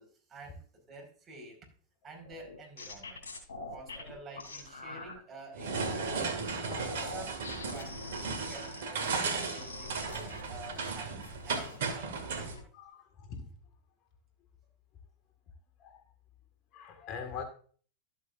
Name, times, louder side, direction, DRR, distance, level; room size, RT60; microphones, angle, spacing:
voice 1, 0.0-1.6 2.0-3.2 3.7-6.5 7.0-12.6, right 2 dB, 30° right, 2 dB, 5.0 m, -50 dB
sound 1, 2.2-5.1 5.6-6.3 6.6-10.9 11.2-11.9 12.3-12.6, left 3 dB, 80° left, 3.3 m, -44 dB
sound 2, 5.5-12.5, right 4 dB, 75° right, 2.1 m, -35 dB
voice 2, 12.8-13.5 15.8-16.0 16.7-17.4, left 6 dB, 45° left, 6 dB, 1.9 m, -43 dB
13.0 x 8.1 x 2.6 m, 0.43 s
hypercardioid pair, 95°, 0 cm